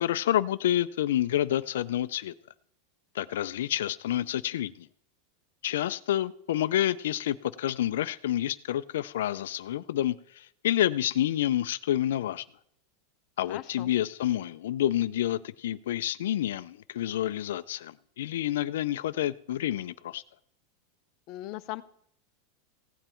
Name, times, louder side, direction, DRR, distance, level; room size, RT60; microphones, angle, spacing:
voice 1, 0.0-2.3 3.1-4.9 5.6-12.4 13.4-20.2, left 12 dB, 90° left, 0.4 m, -28 dB
voice 2, 13.5-13.9 21.3-21.8, left 17 dB, 35° left, 0.6 m, -38 dB
16.0 x 9.0 x 4.4 m
supercardioid pair, 180°, 0 cm